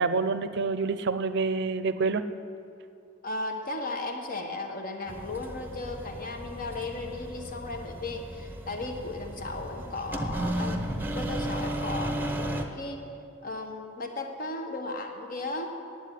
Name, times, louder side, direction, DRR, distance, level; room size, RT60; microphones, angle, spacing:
voice 1, 0.0-2.2, right 4 dB, 60° right, 12 dB, 0.5 m, -27 dB
voice 2, 3.2-13.0 13.4-15.7, left 2 dB, 45° left, 4 dB, 1.2 m, -36 dB
sound 1, 5.1-12.6, right 1 dB, 10° right, 0.8 m, -34 dB
9.4 x 8.1 x 9.2 m, 2.6 s
head